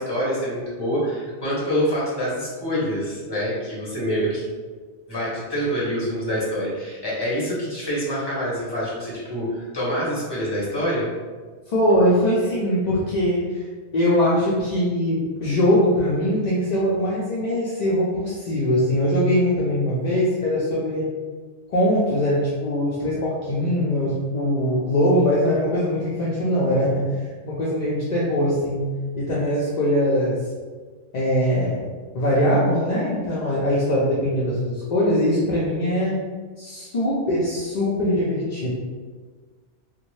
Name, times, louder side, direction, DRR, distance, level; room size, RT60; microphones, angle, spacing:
voice 1, 0.0-4.5 5.1-11.1, equal, 25° left, -7 dB, 0.9 m, -26 dB
voice 2, 11.7-13.6 13.9-21.0 21.7-27.1 27.4-28.9 29.1-30.4 31.1-31.9 32.1-36.2 36.6-38.7, equal, 55° left, -7 dB, 0.5 m, -21 dB
2.6 x 2.2 x 3.0 m, 1.4 s
omnidirectional pair, 1.2 m